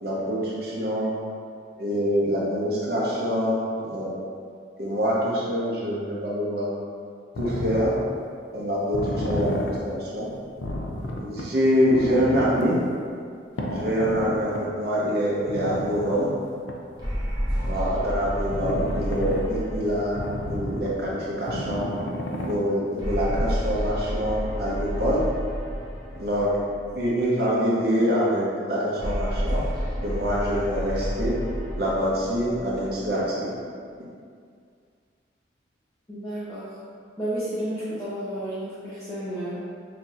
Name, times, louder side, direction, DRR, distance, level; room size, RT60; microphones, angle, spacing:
voice 1, 0.0-1.1 1.8-3.6 3.8-4.1 4.8-6.7 7.4-8.0 8.5-10.3 11.0-12.8 13.7-16.3 17.5-20.2 20.5-21.9 22.5-25.2 26.2-26.5 26.9-29.6 30.0-31.3 31.8-33.5, equal, 55° right, -6 dB, 0.9 m, -25 dB
sound 1, 7.4-8.0 8.9-9.8 10.3-10.4 10.6-11.4 11.9-12.7 13.6-14.6 15.4-16.2 16.7-16.8 17.5-17.8 18.5-19.4 20.1-21.1 21.5-22.6 23.0-23.1 23.3-23.4, left 1 dB, 75° left, 0.4 m, -31 dB
sound 2, 17.0-21.6 23.0-27.4 29.0-33.6, equal, 20° right, 0.8 m, -31 dB
voice 2, 36.1-36.8 37.2-39.7, right 1 dB, 15° left, -12 dB, 0.6 m, -31 dB
5.9 x 2.8 x 2.4 m, 2.2 s
head